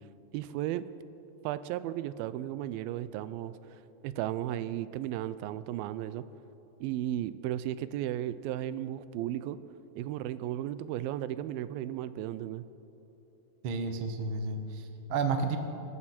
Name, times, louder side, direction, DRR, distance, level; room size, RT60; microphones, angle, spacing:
voice 1, 0.3-0.9 1.4-3.5 4.0-6.2 6.8-9.6 10.0-12.7, right 12 dB, 90° right, 14 dB, 2.4 m, -34 dB
voice 2, 13.6-15.6, right 4 dB, 65° right, 6 dB, 1.3 m, -31 dB
25.5 x 13.0 x 4.3 m, 3.0 s
omnidirectional pair, 4.2 m